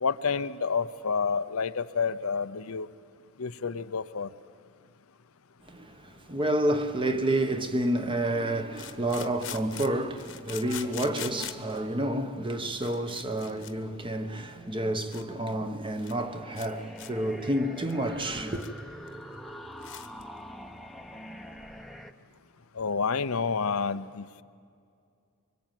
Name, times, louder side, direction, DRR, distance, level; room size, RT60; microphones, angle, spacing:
voice 1, 0.0-2.9 3.4-4.3 22.7-24.4, left 5 dB, 80° left, 0.8 m, -29 dB
voice 2, 5.7-18.6, right 1 dB, 25° right, 1.2 m, -29 dB
sound 1, 8.7-11.8 12.5-12.6 12.7-13.7 14.0-14.2 14.7-14.8 15.1-15.2 15.5-15.6 15.9-16.2 16.5-16.7 17.0-17.1 17.5-18.8 19.1-19.2 19.5-19.6 19.8-20.2, left 12 dB, 65° left, 1.3 m, -42 dB
sound 2, 16.2-22.1, equal, ahead, 1.0 m, -44 dB
24.5 x 22.5 x 9.2 m
head